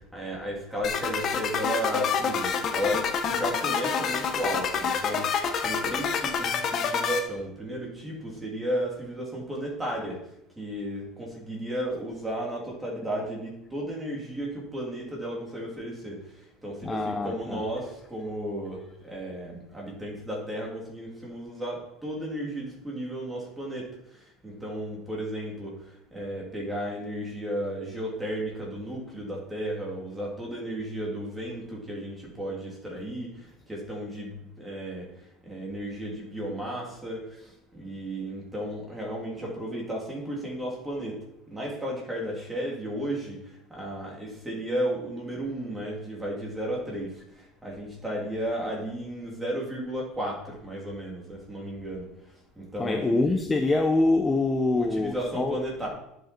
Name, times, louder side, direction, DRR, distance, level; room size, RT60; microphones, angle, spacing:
voice 1, 0.1-5.3 5.6-10.2 10.6-16.2 16.6-23.9 24.4-25.8 26.1-33.3 33.7-35.1 35.4-41.2 41.5-43.4 43.7-47.1 47.6-52.0 52.6-53.3 54.7-55.9, right 1 dB, 10° right, -3 dB, 3.3 m, -34 dB
sound 1, 0.8-7.2, left 6 dB, 35° left, 1.3 m, -27 dB
voice 2, 16.8-17.6 52.8-55.5, left 2 dB, 15° left, 4 dB, 0.8 m, -25 dB
11.0 x 7.8 x 4.5 m, 0.77 s
cardioid pair, 150°, 0 cm